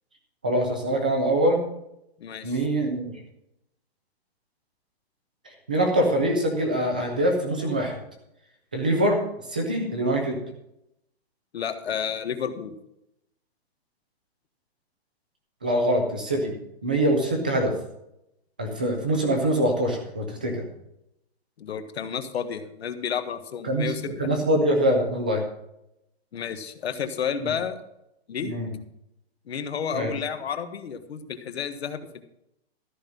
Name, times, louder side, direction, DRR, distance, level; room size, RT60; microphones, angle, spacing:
voice 1, 0.4-1.6 2.4-3.1 5.7-8.0 8.7-9.2 9.5-10.4 15.6-16.5 16.8-17.7 18.6-20.6 23.6-25.4 27.4-27.5 28.4-28.7 29.9-30.1, right 1 dB, 10° right, 3 dB, 0.4 m, -24 dB
voice 2, 2.2-2.6 11.5-12.7 21.6-24.3 26.3-27.8 28.3-28.5 29.5-32.3, left 7 dB, 75° left, 9 dB, 1.4 m, -31 dB
13.5 x 5.4 x 7.4 m, 0.82 s
hypercardioid pair, 175°, 32 cm